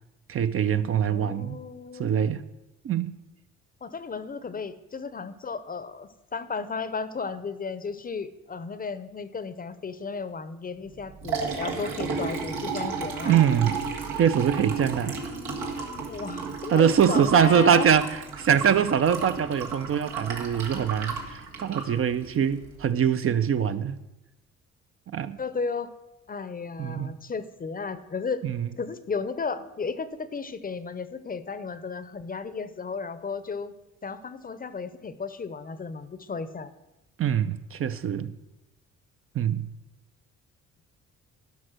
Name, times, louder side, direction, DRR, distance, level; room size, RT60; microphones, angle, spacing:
voice 1, 0.3-1.6 2.0-2.4 2.8-3.2 13.3-13.8 14.2-15.2 16.7-24.0 25.1-25.4 26.8-27.2 28.4-28.7 37.2-38.3 39.3-39.7, right 8 dB, 45° right, 0.5 m, -23 dB
voice 2, 1.1-2.3 3.8-13.4 15.1-17.9 25.4-25.9 26.3-28.5 28.8-33.7 34.0-36.7, left 5 dB, 30° left, 0.7 m, -34 dB
Liquid, 10.9-22.8, right 5 dB, 90° right, 1.6 m, -33 dB
12.0 x 5.3 x 6.4 m
cardioid pair, 90°, 30 cm